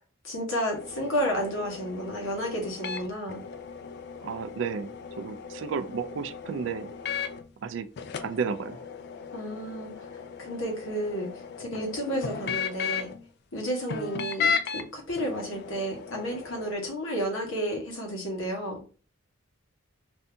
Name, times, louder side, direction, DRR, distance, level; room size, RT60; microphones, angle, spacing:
voice 1, 0.2-3.4 9.3-10.0 10.4-11.3 11.6-13.1 13.5-18.8, equal, 75° left, 1.2 m, -31 dB
sound 1, 0.7-7.5 8.0-13.2 13.9-14.8 15.2-16.7, left 6 dB, 50° left, 0.3 m, -35 dB
voice 2, 4.2-4.9 5.2-6.9 7.6-7.9 8.2-8.8, right 6 dB, 65° right, 0.3 m, -32 dB
2.7 x 2.6 x 3.3 m
head